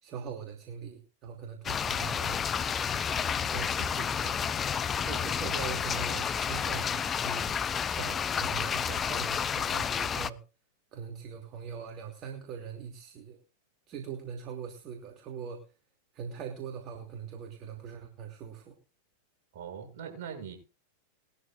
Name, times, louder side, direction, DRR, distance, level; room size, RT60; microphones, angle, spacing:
voice 1, 0.0-2.4 3.1-4.5 4.9-7.5 7.8-10.4 10.9-13.4 13.9-15.6 16.1-18.7, right 7 dB, 35° right, 3 dB, 2.9 m, -42 dB
sound 1, 1.6-10.3, left 7 dB, 20° left, 0.6 m, -30 dB
voice 2, 19.5-20.6, right 7 dB, 50° right, 2 dB, 7.6 m, -41 dB
21.0 x 13.0 x 2.6 m, 0.34 s
figure-of-eight pair, 90°, 0 cm